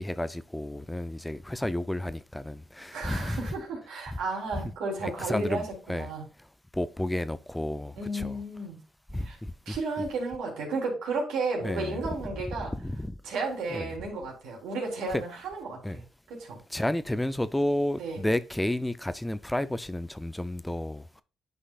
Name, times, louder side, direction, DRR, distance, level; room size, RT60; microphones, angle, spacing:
voice 1, 0.0-3.4 4.5-4.7 5.0-5.6 5.9-6.1 6.7-8.3 9.1-9.8 11.6-12.0 12.8-13.1 13.7-13.9 15.1-15.2 15.8-16.0 16.7-21.2, left 1 dB, 10° left, 0.5 m, -31 dB
voice 2, 2.9-6.2 8.0-8.8 9.2-9.4 9.6-12.7 13.2-16.6 18.0-18.2, right 3 dB, 85° right, 3.5 m, -33 dB
10.0 x 5.5 x 2.4 m
cardioid pair, 90°, 0 cm